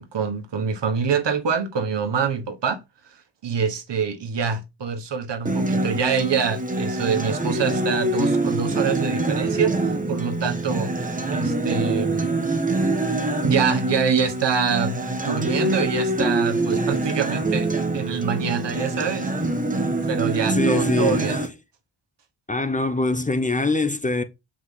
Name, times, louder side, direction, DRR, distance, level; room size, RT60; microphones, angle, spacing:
voice 1, 0.0-2.8 3.4-10.9 11.3-12.3 13.4-19.3 20.1-21.4, right 6 dB, 70° right, 1.4 m, -25 dB
Acoustic guitar, 5.5-21.5, right 2 dB, 20° right, 1.4 m, -25 dB
voice 2, 20.5-21.4 22.5-24.2, left 2 dB, 15° left, 0.8 m, -23 dB
7.9 x 4.9 x 3.8 m
wide cardioid pair, 160°, 44 cm